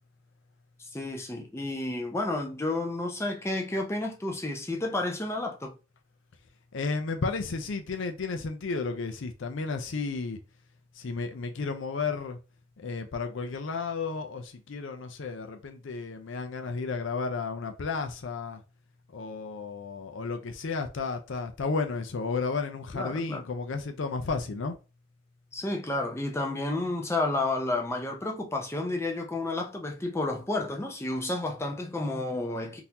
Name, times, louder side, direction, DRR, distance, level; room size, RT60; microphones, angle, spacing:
voice 1, 0.8-5.7 22.9-23.4 25.5-32.8, left 2 dB, 10° left, 0.5 m, -31 dB
voice 2, 6.7-10.4 11.0-12.4 12.8-18.6 19.1-24.8, left 4 dB, 60° left, 0.5 m, -33 dB
3.9 x 2.6 x 2.8 m
head